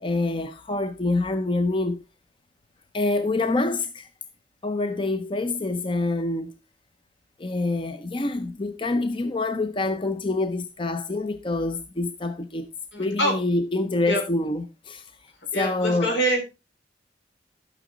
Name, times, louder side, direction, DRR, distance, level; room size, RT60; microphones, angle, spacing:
voice 1, 0.0-2.0 2.9-4.1 4.6-6.5 7.4-12.7 13.0-15.1 15.5-16.2, left 2 dB, 30° left, 0.6 m, -26 dB
voice 2, 12.9-13.4 14.0-14.2 15.5-16.4, right 1 dB, 80° left, 4.0 m, -24 dB
12.0 x 6.2 x 3.8 m
head